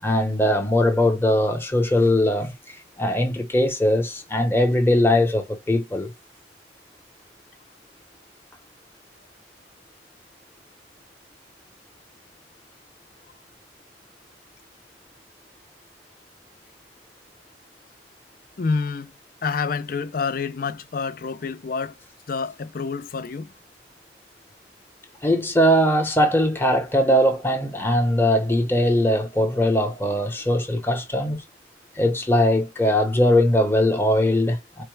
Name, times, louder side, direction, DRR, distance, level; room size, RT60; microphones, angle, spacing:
voice 1, 0.0-2.5 3.0-6.1 25.2-31.4 32.0-34.8, left 1 dB, 10° left, 0.9 m, -20 dB
voice 2, 18.6-19.1 19.4-21.9 22.3-23.5, left 5 dB, 50° left, 0.5 m, -28 dB
4.3 x 2.1 x 3.1 m
head